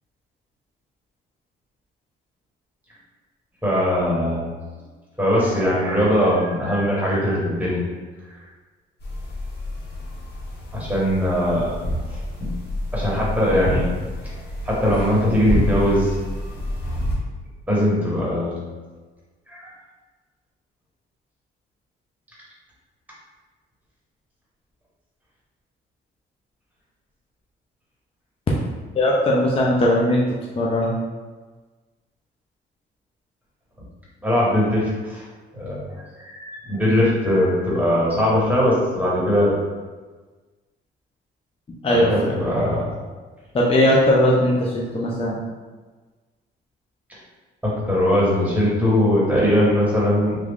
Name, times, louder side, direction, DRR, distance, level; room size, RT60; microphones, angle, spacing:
voice 1, 3.6-4.4 5.2-7.8 10.7-11.8 12.1-12.5 12.9-13.9 14.6-16.2 17.7-18.6 19.5-19.7 34.2-35.2 35.5-39.5 41.9-42.9 47.6-50.4, equal, 10° right, -6 dB, 1.3 m, -20 dB
sound 1, 9.0-17.2, equal, 55° left, 1.0 m, -28 dB
voice 2, 28.9-30.2 30.6-31.0 41.8-42.3 43.5-45.4, left 1 dB, 30° left, -4 dB, 0.5 m, -19 dB
3.1 x 2.4 x 3.5 m, 1.3 s
cardioid pair, 90°, 20 cm